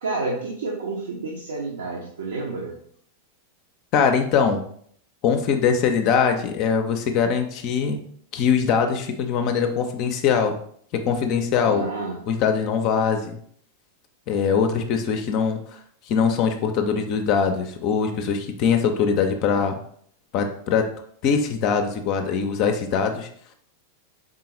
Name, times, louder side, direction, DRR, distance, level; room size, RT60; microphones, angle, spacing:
voice 1, 0.0-2.7 11.6-12.2, right 3 dB, 65° right, -3 dB, 0.7 m, -30 dB
voice 2, 3.9-4.6 5.2-8.0 8.3-10.6 10.9-11.8 12.3-13.4 14.3-15.8 16.1-19.8 20.3-20.9 21.2-23.3, left 6 dB, 40° left, 5 dB, 0.4 m, -22 dB
3.7 x 3.7 x 2.9 m, 0.62 s
figure-of-eight pair, 90°, 0 cm